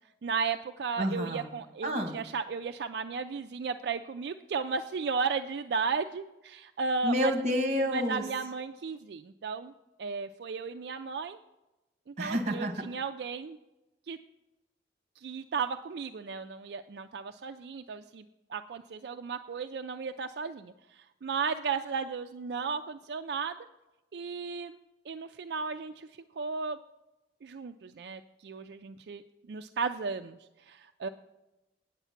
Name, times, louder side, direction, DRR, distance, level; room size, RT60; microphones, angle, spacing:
voice 1, 0.2-7.3 7.9-9.7 10.0-11.4 12.1-13.6 14.1-14.2 15.2-18.2 18.5-23.6 24.1-24.8 25.1-26.1 26.4-26.8 27.4-29.2 29.5-30.4 30.7-31.1, right 5 dB, 70° right, 7 dB, 0.4 m, -34 dB
voice 2, 1.0-1.5 1.8-2.2 7.0-8.2 12.2-12.8, equal, 40° right, 4 dB, 1.4 m, -29 dB
9.2 x 8.1 x 5.7 m, 0.99 s
head